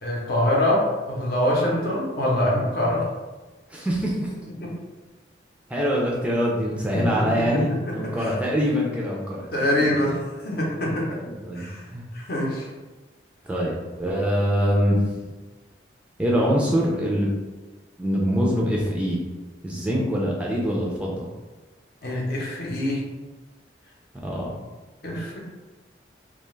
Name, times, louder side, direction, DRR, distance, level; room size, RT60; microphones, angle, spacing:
voice 1, 0.0-3.1 4.6-4.7 6.7-7.1 7.9-8.3 9.5-11.2 11.5-11.8 12.1-12.7 22.0-23.0 25.0-25.4, left 1 dB, 55° left, -3 dB, 0.7 m, -24 dB
voice 2, 3.7-4.3 5.7-10.0 11.2-12.0 13.4-15.1 16.2-17.3 18.0-19.2 19.6-21.3 24.1-24.5, equal, 5° right, -4 dB, 0.3 m, -24 dB
2.3 x 2.2 x 3.1 m, 1.2 s
head